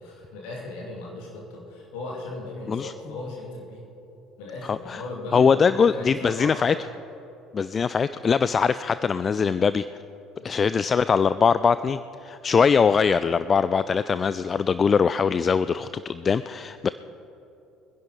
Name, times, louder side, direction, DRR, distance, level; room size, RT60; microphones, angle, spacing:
voice 1, 0.0-3.9 4.4-6.8 10.4-10.6, left 2 dB, 60° left, -1 dB, 2.7 m, -37 dB
voice 2, 4.7-5.0 5.3-6.7 7.5-9.9 10.4-16.9, left 6 dB, 30° left, 14 dB, 0.3 m, -22 dB
24.0 x 10.5 x 4.2 m, 2.9 s
figure-of-eight pair, 55°, 0 cm